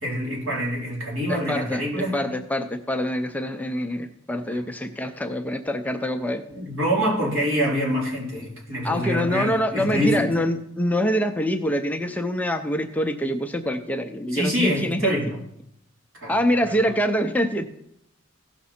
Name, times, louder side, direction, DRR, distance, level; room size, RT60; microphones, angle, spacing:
voice 1, 0.0-2.2 6.5-10.3 14.3-15.3 16.1-16.3 16.7-16.8, equal, 80° right, -4 dB, 3.6 m, -25 dB
voice 2, 1.3-6.4 8.8-15.1 16.3-17.7, equal, 5° left, 6 dB, 0.4 m, -25 dB
15.5 x 5.9 x 4.3 m, 0.77 s
head